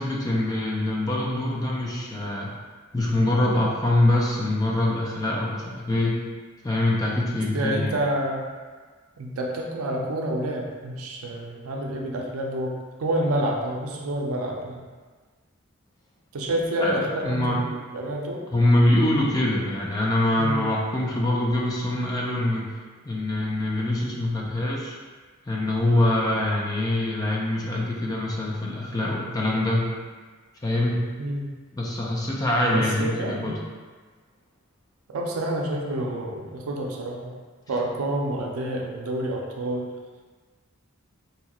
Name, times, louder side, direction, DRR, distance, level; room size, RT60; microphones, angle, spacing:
voice 1, 0.0-2.5 2.9-6.2 6.6-8.0 16.8-17.6 18.5-22.7 23.0-25.0 25.5-29.9 30.6-31.1 31.7-33.5, left 1 dB, 15° left, -3 dB, 0.4 m, -24 dB
voice 2, 7.5-8.4 9.2-14.9 16.3-18.4 20.4-20.6 31.2-31.5 32.7-33.6 35.1-37.4 37.7-39.8, right 1 dB, 80° right, 0 dB, 0.5 m, -28 dB
2.8 x 2.3 x 2.8 m, 1.4 s
head